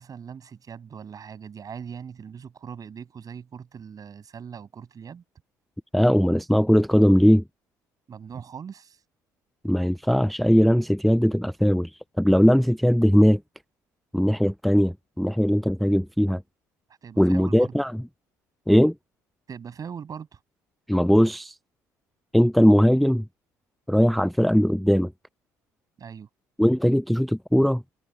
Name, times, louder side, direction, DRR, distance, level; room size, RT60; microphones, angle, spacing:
voice 1, 0.0-5.2 8.1-9.0 17.0-17.7 19.5-20.4 26.0-26.3, right 7 dB, 45° right, 7.8 m, -40 dB
voice 2, 5.9-7.4 9.6-11.9 12.2-13.4 14.1-16.4 17.2-17.9 18.7-18.9 20.9-21.6 22.3-23.3 23.9-25.1 26.6-27.8, equal, ahead, 0.4 m, -19 dB
hypercardioid pair, 60°, 9 cm